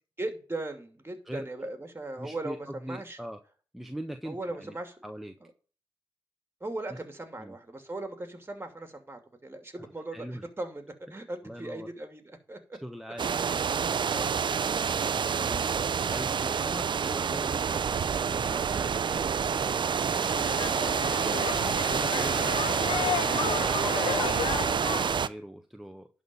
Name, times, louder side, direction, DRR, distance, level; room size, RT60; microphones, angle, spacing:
voice 1, 0.2-3.2 4.2-5.0 6.6-12.8, right 2 dB, 25° right, 2.7 m, -38 dB
voice 2, 2.2-3.4 3.7-4.8 5.0-5.4 7.4-7.6 10.1-10.4 11.4-11.9 12.8-13.3 15.1-26.1, equal, ahead, 1.1 m, -42 dB
sound 1, 13.2-25.3, right 6 dB, 60° right, 0.5 m, -28 dB
sound 2, 20.1-25.2, left 10 dB, 80° left, 0.5 m, -33 dB
11.0 x 4.3 x 7.0 m
cardioid pair, 50°, 9 cm